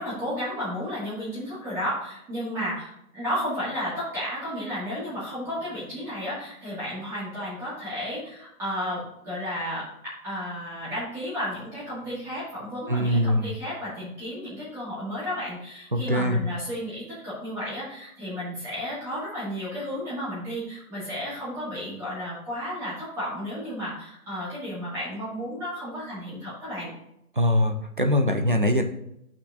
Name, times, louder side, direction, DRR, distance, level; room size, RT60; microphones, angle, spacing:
voice 1, 0.0-26.9, equal, 5° right, -10 dB, 1.9 m, -33 dB
voice 2, 12.9-13.5 15.9-16.4 27.4-28.8, left 1 dB, 35° right, 6 dB, 0.5 m, -22 dB
12.0 x 5.8 x 2.6 m, 0.79 s
hypercardioid pair, 175°, 44 cm